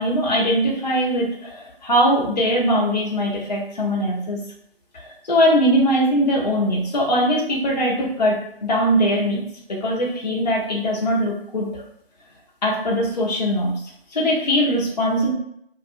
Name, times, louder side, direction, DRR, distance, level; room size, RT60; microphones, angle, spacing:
voice 1, 0.0-4.4 4.9-9.4 9.7-11.7 12.6-13.7 14.1-15.3, equal, 45° left, -4 dB, 0.6 m, -21 dB
2.7 x 2.2 x 2.5 m, 0.71 s
figure-of-eight pair, 150°, 31 cm